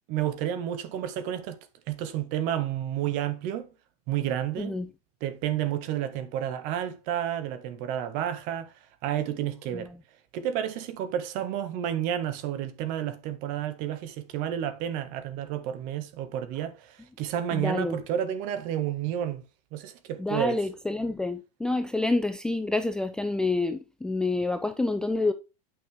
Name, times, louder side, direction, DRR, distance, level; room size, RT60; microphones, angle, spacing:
voice 1, 0.1-1.6 1.9-3.7 4.1-4.8 5.2-8.7 9.0-9.9 10.3-19.4 19.7-20.6, right 10 dB, 45° right, 1.7 m, -30 dB
voice 2, 4.6-4.9 9.7-9.9 17.5-18.0 20.2-25.3, left 2 dB, 5° left, 0.5 m, -28 dB
9.2 x 6.0 x 3.5 m
hypercardioid pair, 135°, 19 cm